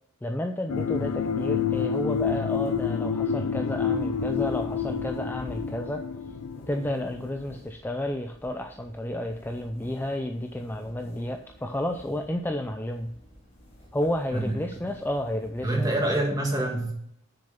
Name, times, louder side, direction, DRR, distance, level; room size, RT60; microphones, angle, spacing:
voice 1, 0.2-6.0 6.7-13.1 13.9-15.9, left 1 dB, 10° left, 5 dB, 0.4 m, -31 dB
sound 1, 0.7-7.4, left 6 dB, 80° left, 0.4 m, -28 dB
sound 2, 0.7-15.9, equal, 30° left, 3.7 m, -49 dB
voice 2, 15.6-16.9, right 1 dB, 15° right, 0 dB, 1.9 m, -26 dB
7.0 x 6.5 x 5.7 m, 0.73 s
head